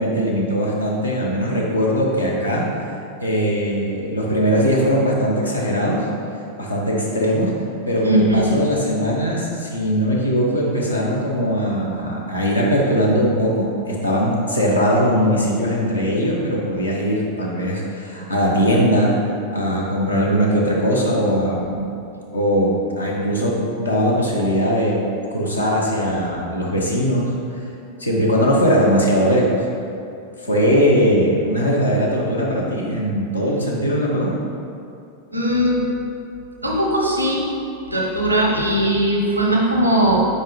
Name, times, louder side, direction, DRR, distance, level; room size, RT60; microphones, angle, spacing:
voice 1, 0.0-2.6 3.2-6.0 6.6-7.5 7.9-19.1 19.5-21.9 22.3-25.0 25.3-27.3 28.0-29.6 30.4-34.3, equal, 80° left, -3 dB, 1.0 m, -20 dB
voice 2, 8.0-8.4 35.3-35.9 36.6-37.5 37.9-40.3, right 1 dB, 85° right, -1 dB, 0.9 m, -19 dB
5.4 x 4.8 x 3.7 m, 2.5 s
figure-of-eight pair, 90°, 0 cm